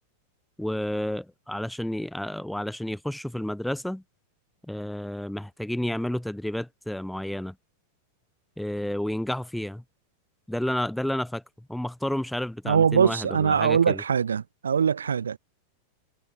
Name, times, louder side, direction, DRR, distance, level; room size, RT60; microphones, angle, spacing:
voice 1, 0.6-4.0 4.7-7.5 8.6-9.8 10.5-11.4 11.7-14.0, left 1 dB, ahead, 0.4 m, -31 dB
voice 2, 12.7-15.4, right 7 dB, 70° right, 0.4 m, -22 dB
figure-of-eight pair, 90°, 0 cm